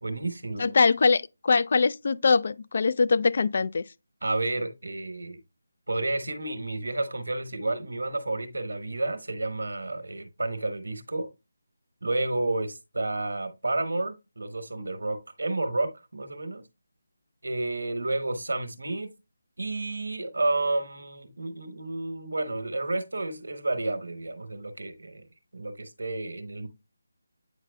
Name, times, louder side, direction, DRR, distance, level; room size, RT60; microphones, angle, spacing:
voice 1, 0.0-0.7 4.2-5.4 5.9-11.3 12.0-16.6 17.4-19.1 19.6-25.3 25.5-26.7, right 2 dB, 80° right, 1.1 m, -31 dB
voice 2, 0.6-3.8, left 4 dB, 50° left, 0.3 m, -22 dB
8.8 x 4.9 x 2.2 m
figure-of-eight pair, 165°, 0 cm